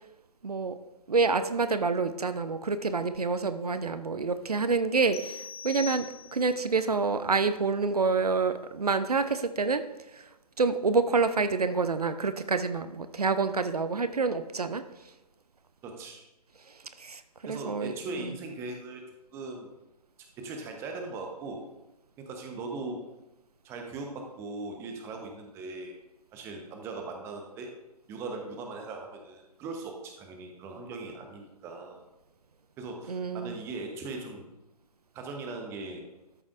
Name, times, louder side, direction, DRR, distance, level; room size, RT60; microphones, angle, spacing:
voice 1, 0.4-0.8 1.1-6.0 6.3-9.8 10.6-14.8 17.0-17.2 17.5-18.3 33.1-33.5, right 4 dB, 70° right, 11 dB, 0.7 m, -27 dB
sound 1, 5.1-6.6, left 6 dB, 40° left, 0.8 m, -42 dB
voice 2, 15.8-16.2 17.5-19.0 19.3-19.7 20.4-21.6 22.2-23.0 23.6-26.0 26.3-27.7 28.1-32.0 32.8-34.5 35.1-36.1, right 3 dB, 15° right, 3 dB, 0.9 m, -39 dB
13.0 x 7.2 x 2.5 m, 0.99 s
figure-of-eight pair, 135°, 20 cm